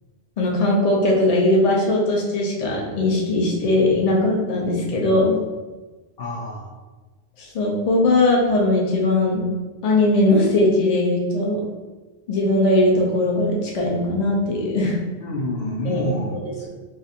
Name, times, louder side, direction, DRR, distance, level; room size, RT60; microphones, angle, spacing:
voice 1, 0.4-5.4 7.4-9.4 9.8-11.6 12.3-15.0 15.8-16.0, left 2 dB, 45° left, -2 dB, 0.6 m, -19 dB
voice 2, 6.2-6.7 15.2-16.7, equal, 65° left, -2 dB, 0.9 m, -28 dB
2.5 x 2.5 x 4.1 m, 1.2 s
omnidirectional pair, 1.1 m